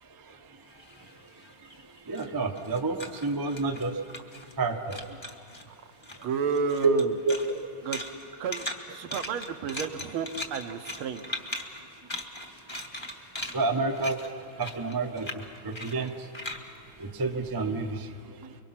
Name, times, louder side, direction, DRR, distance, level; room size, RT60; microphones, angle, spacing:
voice 1, 0.0-0.6 1.0-1.3 1.6-4.0 4.6-5.2 6.8-7.0 7.3-7.6 13.5-14.2 14.6-16.3 17.0-18.6, right 3 dB, 20° right, 3 dB, 0.6 m, -30 dB
sound 1, 0.7-4.6 4.9-5.7 6.0-17.8, left 1 dB, 15° left, 0.9 m, -40 dB
voice 2, 6.2-7.1 7.8-8.0 8.4-11.2, right 6 dB, 75° right, 7 dB, 1.8 m, -31 dB
24.5 x 23.0 x 5.9 m, 2.7 s
omnidirectional pair, 2.4 m